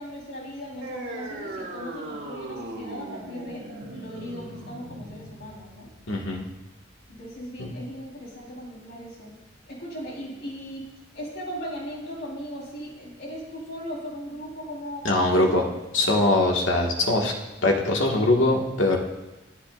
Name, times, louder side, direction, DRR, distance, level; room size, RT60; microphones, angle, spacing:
voice 1, 0.0-3.6 3.9-5.9 7.1-9.3 9.7-10.9 11.1-16.1, equal, 60° left, -3 dB, 4.0 m, -38 dB
sound 1, 0.8-7.8, right 1 dB, 80° right, 2.2 m, -39 dB
voice 2, 6.1-6.4 7.6-7.7 15.0-15.6 15.9-17.3 17.6-19.0, left 2 dB, 80° left, 0 dB, 1.8 m, -22 dB
21.5 x 10.0 x 2.5 m, 1.0 s
head